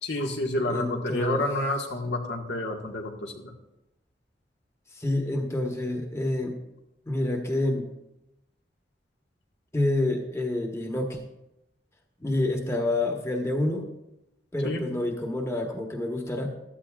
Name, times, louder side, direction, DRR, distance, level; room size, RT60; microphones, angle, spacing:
voice 1, 0.0-3.4 14.6-14.9, left 1 dB, 80° left, 1 dB, 1.8 m, -29 dB
voice 2, 0.6-1.4 4.9-6.6 7.1-7.9 9.7-11.2 12.2-13.9 14.5-16.5, left 1 dB, 15° left, 2 dB, 1.2 m, -28 dB
16.0 x 12.5 x 2.4 m, 0.89 s
head